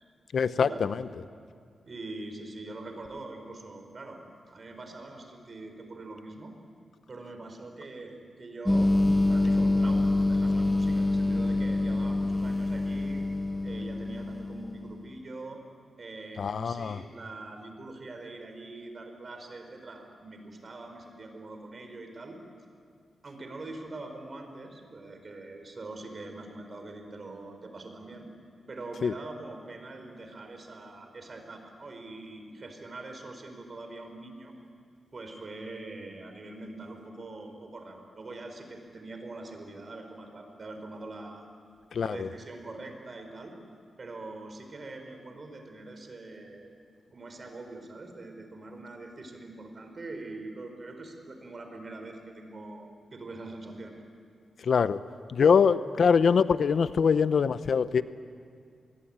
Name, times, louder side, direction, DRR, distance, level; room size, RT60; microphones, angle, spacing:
voice 1, 0.3-0.9 16.4-17.0 29.0-29.1 42.0-42.3 54.7-55.0 55.3-58.0, left 6 dB, 70° left, 14 dB, 0.7 m, -23 dB
voice 2, 1.9-4.2 4.5-6.5 7.1-8.9 9.3-13.2 13.6-15.6 16.0-22.4 23.2-28.3 28.7-34.5 35.1-41.5 42.0-43.6 44.0-46.7 47.1-53.9, right 2 dB, 45° right, 5 dB, 4.3 m, -43 dB
sound 1, 8.7-15.1, left 2 dB, 10° left, 0.6 m, -26 dB
24.5 x 21.0 x 8.8 m, 2.2 s
cardioid pair, 95°, 0 cm